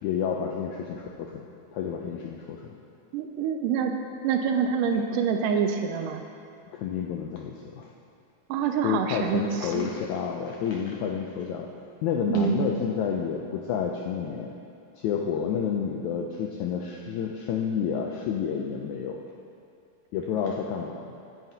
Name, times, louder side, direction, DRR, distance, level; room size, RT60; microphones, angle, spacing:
voice 1, 0.0-1.4 1.7-2.7 6.7-7.9 8.8-11.7 12.0-14.5 15.0-19.2 20.1-21.1, left 7 dB, 85° left, 0 dB, 1.7 m, -30 dB
voice 2, 3.1-4.0 4.2-6.2 8.5-9.9 12.3-12.6, right 7 dB, 80° right, 5 dB, 2.0 m, -26 dB
15.5 x 9.1 x 2.8 m, 2.5 s
omnidirectional pair, 4.0 m